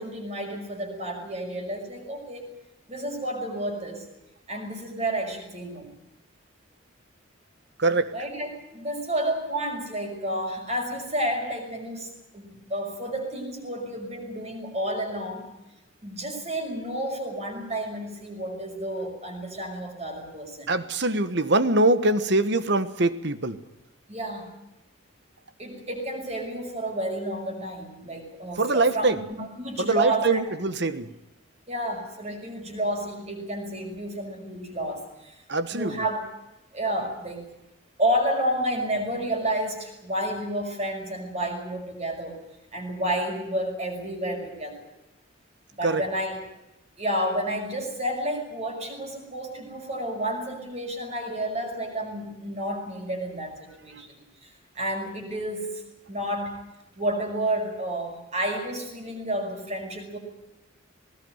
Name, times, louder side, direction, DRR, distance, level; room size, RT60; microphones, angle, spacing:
voice 1, 0.0-2.5 2.9-4.1 4.5-5.9 8.1-15.5 16.0-20.7 24.1-24.5 25.6-30.7 31.7-35.4 35.7-36.3 36.7-37.4 38.0-42.4 42.7-44.9 45.7-46.4 47.0-54.5 54.8-56.6 57.0-60.2, right 1 dB, 30° right, 3 dB, 5.8 m, -30 dB
voice 2, 7.8-8.1 20.7-23.6 28.6-29.2 29.8-31.0 35.5-35.9 45.8-46.0, right 2 dB, 55° right, 12 dB, 1.4 m, -23 dB
19.5 x 19.5 x 8.9 m, 0.93 s
head